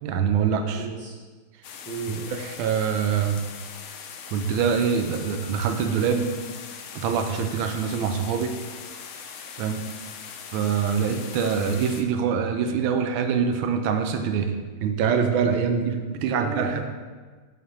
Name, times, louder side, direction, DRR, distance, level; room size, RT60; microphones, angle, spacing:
voice 1, 0.0-0.8 2.3-3.4 4.3-6.4 6.9-8.6 9.6-9.8 10.5-14.5 14.8-15.9 16.2-16.8, right 7 dB, 75° right, 6 dB, 1.3 m, -24 dB
voice 2, 0.7-1.1 1.8-2.3 15.7-16.8, right 2 dB, 10° left, -7 dB, 0.5 m, -35 dB
sound 1, 1.6-12.0, left 6 dB, 80° left, 1.4 m, -40 dB
5.8 x 3.2 x 5.5 m, 1.4 s
omnidirectional pair, 2.3 m